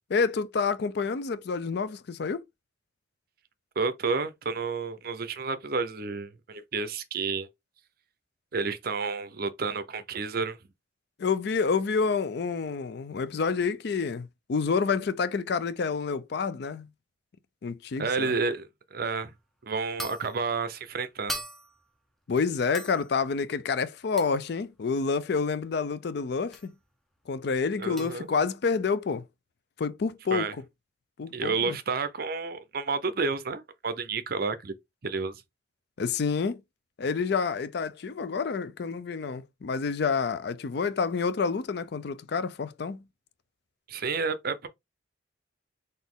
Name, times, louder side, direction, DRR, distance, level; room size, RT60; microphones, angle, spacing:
voice 1, 0.1-2.4 11.2-16.9 17.6-18.4 22.3-26.7 27.3-29.2 29.8-30.5 31.2-31.8 36.0-36.6 37.0-43.0, left 5 dB, 55° left, 0.4 m, -28 dB
voice 2, 3.8-7.5 8.5-10.6 18.0-19.3 19.6-21.4 27.8-28.3 30.3-30.5 31.3-34.7 35.0-35.4 43.9-44.7, right 4 dB, 50° right, 0.6 m, -30 dB
sound 1, 19.1-19.3 20.0-20.5 21.3-21.9 22.7-23.2 24.2-24.4 26.5-26.7 28.0-28.2, right 1 dB, ahead, 0.5 m, -39 dB
4.1 x 2.5 x 3.6 m
head